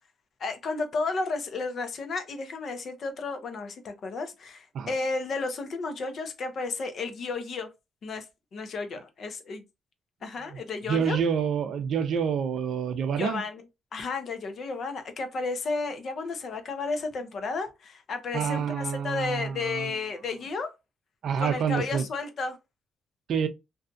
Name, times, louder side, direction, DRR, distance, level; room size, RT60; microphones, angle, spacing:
voice 1, 0.4-7.7 8.0-8.3 8.5-9.6 10.2-11.2 13.2-13.6 13.9-20.7 21.4-22.6, left 3 dB, 55° left, 0.6 m, -32 dB
voice 2, 10.9-13.4 18.3-19.9 21.2-22.0 23.3-23.5, right 7 dB, 65° right, 0.4 m, -27 dB
2.6 x 2.3 x 2.5 m
cardioid pair, 90°, 0 cm